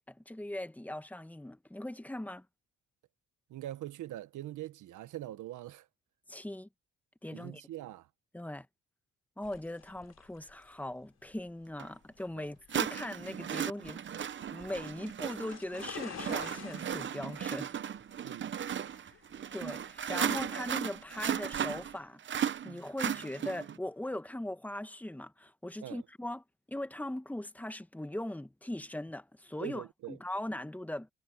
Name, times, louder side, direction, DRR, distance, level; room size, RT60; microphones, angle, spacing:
voice 1, 0.1-2.4 6.3-6.7 7.2-7.6 8.3-8.7 9.4-14.0 14.5-17.7 19.5-26.4 26.7-31.1, left 1 dB, 5° left, 1.4 m, -40 dB
voice 2, 3.5-5.9 7.3-8.1 12.3-12.5 18.2-18.6 25.8-26.0 29.6-30.2, right 14 dB, 80° right, 1.3 m, -43 dB
sound 1, 9.4-21.8, left 8 dB, 60° left, 3.7 m, -51 dB
sound 2, 11.8-11.9 12.7-23.8, right 9 dB, 40° right, 0.7 m, -36 dB
cardioid pair, 90°, 30 cm